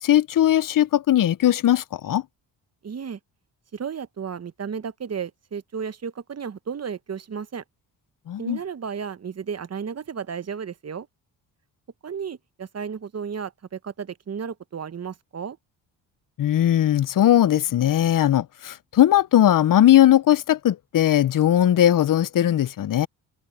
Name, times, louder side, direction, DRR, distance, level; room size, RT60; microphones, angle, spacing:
voice 1, 0.0-2.2 8.3-8.6 16.4-23.1, left 12 dB, 45° left, 0.7 m, -19 dB
voice 2, 2.8-3.2 3.7-7.6 8.4-11.1 12.0-15.6, right 6 dB, 35° right, 1.0 m, -33 dB
supercardioid pair, 65°, 44 cm